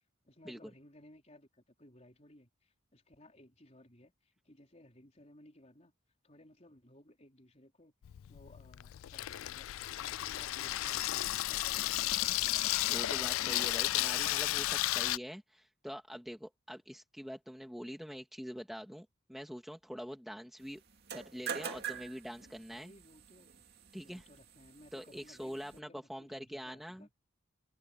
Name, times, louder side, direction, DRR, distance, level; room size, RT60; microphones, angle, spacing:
voice 1, 0.2-5.9 6.2-7.9 8.3-12.0 22.7-23.5 24.0-27.1, left 1 dB, 35° left, 4.4 m, -59 dB
Water tap faucet / Sink (filling or washing), 8.0-15.2, left 16 dB, 85° left, 0.3 m, -33 dB
voice 2, 12.9-20.8 21.1-22.9 23.9-24.3 24.9-27.1, equal, ahead, 2.1 m, -45 dB
sound 1, 20.9-25.8, right 7 dB, 50° right, 2.5 m, -45 dB
head